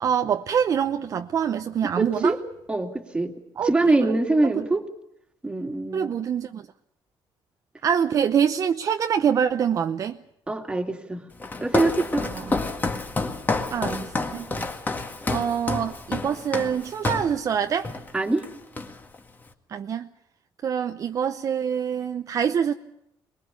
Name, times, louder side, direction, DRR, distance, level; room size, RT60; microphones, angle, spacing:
voice 1, 0.0-2.3 3.6-4.2 4.6-4.7 5.9-6.7 7.8-10.2 12.2-12.6 13.7-14.7 15.3-17.9 19.7-20.1 20.6-22.7, right 8 dB, 40° right, 0.7 m, -25 dB
voice 2, 2.0-2.4 2.7-3.3 3.6-4.8 5.4-6.1 10.5-11.2 11.6-12.3 18.1-18.4, right 2 dB, 10° right, 2.4 m, -24 dB
Walk footsteps, 11.4-17.4 17.8-18.1 18.4-19.2, left 3 dB, 20° left, 1.9 m, -29 dB
23.0 x 21.5 x 6.8 m
cardioid pair, 155°, 9 cm